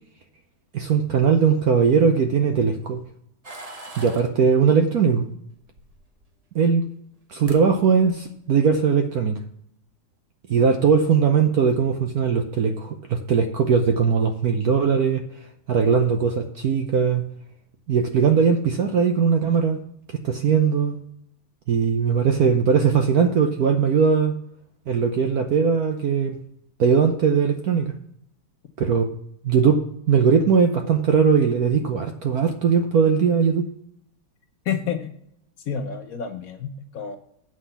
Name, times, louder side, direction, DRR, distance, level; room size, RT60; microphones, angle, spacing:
voice 1, 0.7-3.0 4.0-5.3 6.5-6.8 7.3-9.4 10.5-15.2 15.7-17.2 17.9-19.8 20.2-21.0 21.7-24.4 24.9-26.4 26.8-27.9 28.8-29.1 29.4-33.7, right 6 dB, 65° right, 6 dB, 0.9 m, -20 dB
sound 1, 3.4-4.3 5.6-6.3 7.1-7.2 7.4-7.6 8.0-8.4, right 1 dB, 40° right, 0.5 m, -41 dB
voice 2, 34.6-35.1 35.7-37.2, left 7 dB, 65° left, 7 dB, 0.8 m, -29 dB
8.2 x 5.7 x 6.7 m, 0.74 s
omnidirectional pair, 2.3 m